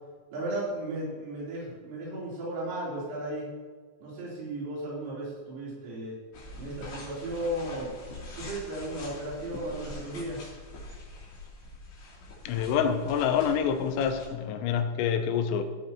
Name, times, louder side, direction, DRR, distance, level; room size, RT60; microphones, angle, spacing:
voice 1, 0.3-3.5 4.0-6.2 6.5-7.9 8.3-10.4, right 1 dB, 85° right, -7 dB, 6.4 m, -35 dB
sound 1, 6.3-14.3, left 2 dB, 60° left, 5.2 m, -44 dB
voice 2, 12.5-15.6, left 7 dB, 85° left, 7 dB, 3.5 m, -27 dB
16.0 x 8.2 x 3.0 m, 1.5 s
omnidirectional pair, 5.7 m